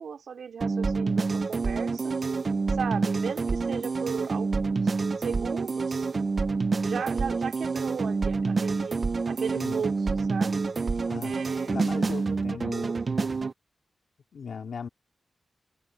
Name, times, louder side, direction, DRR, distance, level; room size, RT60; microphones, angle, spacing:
voice 1, 0.0-2.2 2.7-4.8 5.2-6.1 6.8-9.9 10.3-10.9 11.2-11.8, right 6 dB, 80° right, 2.6 m, -36 dB
sound 1, 0.6-13.5, right 4 dB, 45° right, 0.6 m, -27 dB
voice 2, 11.0-11.4 11.7-13.0 14.3-14.9, left 6 dB, 75° left, 3.0 m, -37 dB
wide cardioid pair, 85°, 0 cm